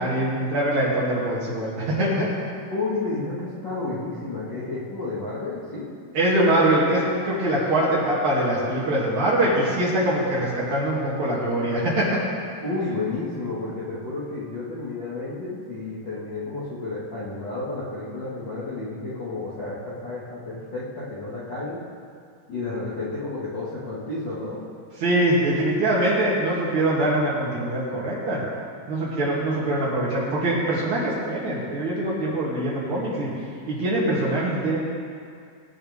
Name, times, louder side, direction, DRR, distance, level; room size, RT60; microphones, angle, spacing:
voice 1, 0.0-2.3 6.1-12.1 25.0-28.4 28.9-33.3 33.7-34.8, right 1 dB, 45° right, -7 dB, 3.3 m, -23 dB
voice 2, 2.7-5.9 12.6-21.8 22.5-24.6 32.7-33.1, left 3 dB, 80° left, -10 dB, 1.0 m, -31 dB
21.5 x 9.6 x 3.6 m, 2.2 s
omnidirectional pair, 5.7 m